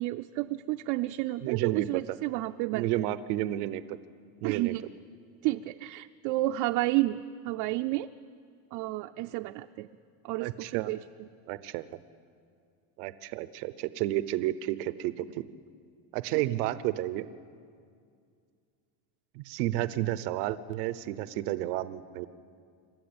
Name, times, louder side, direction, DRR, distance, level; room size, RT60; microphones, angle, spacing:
voice 1, 0.0-3.1 4.4-4.8 5.4-8.1 8.7-9.9 10.2-11.3, right 17 dB, 60° right, 7 dB, 0.6 m, -31 dB
voice 2, 1.4-2.2 2.7-4.0 4.4-4.8 10.4-10.9 11.5-11.9 13.0-15.4 16.1-17.3 19.3-22.3, right 15 dB, 85° right, 15 dB, 0.9 m, -31 dB
26.5 x 13.0 x 8.7 m, 2.3 s
cardioid pair, 140°, 46 cm